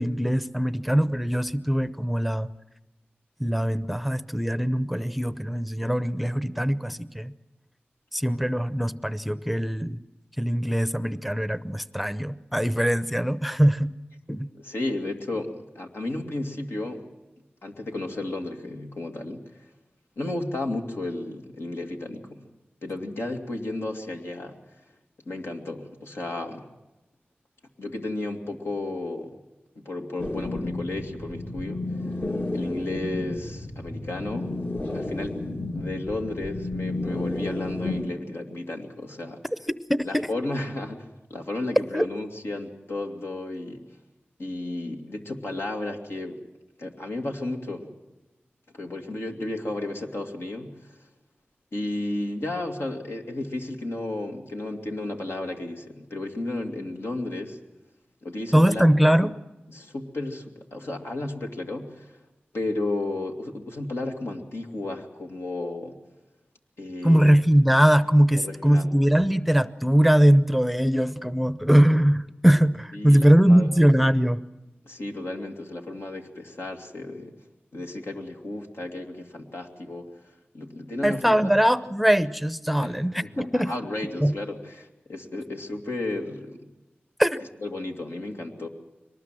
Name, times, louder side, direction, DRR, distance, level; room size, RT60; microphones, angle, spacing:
voice 1, 0.0-2.5 3.4-7.3 8.1-10.0 10.4-13.9 14.3-14.5 39.9-40.3 41.9-42.1 58.5-59.3 67.0-74.4 81.0-83.7 84.2-84.3 87.2-87.4, equal, ahead, 14 dB, 0.7 m, -21 dB
voice 2, 14.5-17.1 17.6-19.7 20.2-22.4 22.8-24.6 25.3-26.7 27.8-29.4 29.8-31.8 32.5-34.6 34.9-35.3 35.7-39.4 40.0-43.8 44.4-46.4 46.8-47.9 48.7-51.0 51.7-57.6 58.2-58.9 59.2-59.3 59.7-62.2 62.5-66.0 66.8-67.4 68.3-69.0 72.9-73.7 74.8-77.3 77.7-80.1 80.5-81.5 82.8-86.6 87.6-88.7, left 2 dB, 80° left, 2 dB, 2.4 m, -33 dB
sound 1, 30.2-38.1, left 2 dB, 50° left, 2.3 m, -32 dB
23.0 x 19.5 x 7.6 m, 1.0 s
wide cardioid pair, 60°, 4 cm